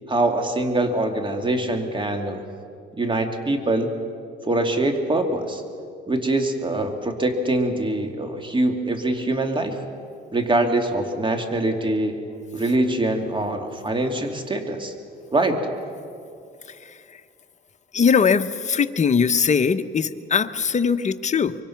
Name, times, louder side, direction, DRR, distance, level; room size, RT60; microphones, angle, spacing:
voice 1, 0.1-2.4 2.9-3.9 4.4-5.6 6.1-9.8 10.3-12.2 12.5-14.9 15.3-15.6, right 2 dB, 25° right, 5 dB, 2.6 m, -23 dB
voice 2, 17.9-21.5, left 6 dB, 35° left, 9 dB, 0.9 m, -21 dB
24.5 x 24.0 x 5.9 m, 2.4 s
cardioid pair, 90°, 20 cm